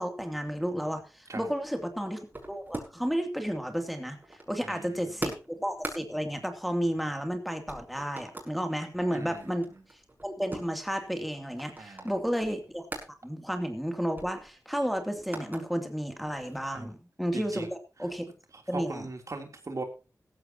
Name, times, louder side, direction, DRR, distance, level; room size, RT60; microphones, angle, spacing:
voice 1, 0.0-12.9 13.2-17.7 18.0-18.2 18.7-19.1, equal, ahead, 5 dB, 2.8 m, -32 dB
sound 1, 1.3-3.2 3.5-7.4 7.7-8.6 9.0-13.1 13.5-13.6 13.9-15.6 16.1-16.9, right 1 dB, 30° right, 6.4 m, -43 dB
voice 2, 4.6-5.0 9.1-9.5 11.8-12.1 16.7-16.9 17.3-17.7 18.7-19.8, right 3 dB, 55° right, 5 dB, 3.2 m, -39 dB
16.5 x 15.0 x 2.9 m, 0.31 s
cardioid pair, 55°, 6 cm